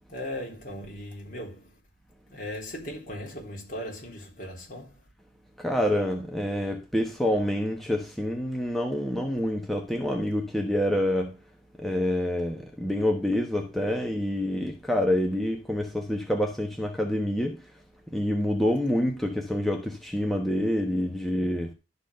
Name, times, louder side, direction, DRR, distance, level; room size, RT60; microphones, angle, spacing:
voice 1, 0.1-1.8 2.3-5.0, left 1 dB, 50° left, 4.1 m, -38 dB
voice 2, 5.6-11.3 11.8-17.6 18.1-21.7, left 1 dB, ahead, 1.1 m, -27 dB
12.0 x 4.1 x 6.7 m
head